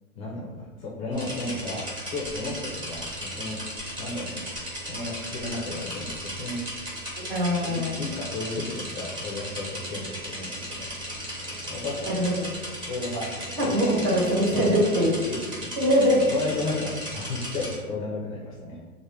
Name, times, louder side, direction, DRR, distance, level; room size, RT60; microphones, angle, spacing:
voice 1, 0.2-1.8 2.1-3.1 3.4-3.6 4.0-4.5 4.9-6.6 7.5-10.9 11.4-12.2 12.9-13.3 13.6-13.7 14.6-14.7 15.1-15.9 16.3-18.8, left 2 dB, 25° left, -5 dB, 0.4 m, -33 dB
sound 1, 1.1-17.8, equal, 10° right, 0.8 m, -36 dB
voice 2, 7.3-8.0 12.1-12.3 13.6-15.1 15.8-16.2, equal, 40° right, -3 dB, 1.1 m, -22 dB
3.1 x 2.1 x 3.3 m, 1.3 s
hypercardioid pair, 115°, 44 cm